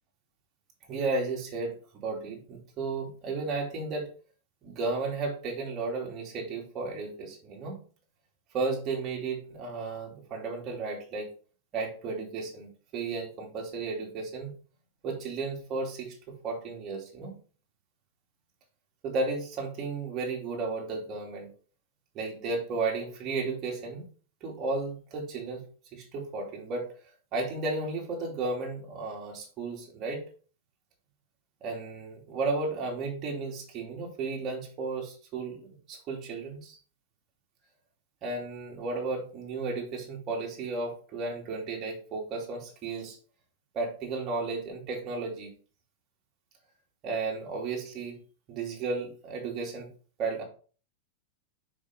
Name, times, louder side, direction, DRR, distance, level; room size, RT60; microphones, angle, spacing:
voice 1, 0.9-4.1 4.6-7.8 8.5-11.3 11.7-14.5 15.0-17.3 19.0-21.5 22.1-24.1 24.4-25.6 25.9-26.9 27.3-30.2 31.6-36.8 38.2-43.2 43.7-45.5 47.0-48.2 48.5-49.9 50.2-50.4, right 3 dB, 35° right, -1 dB, 2.6 m, -34 dB
5.3 x 5.2 x 3.6 m, 0.40 s
hypercardioid pair, 115°, 0 cm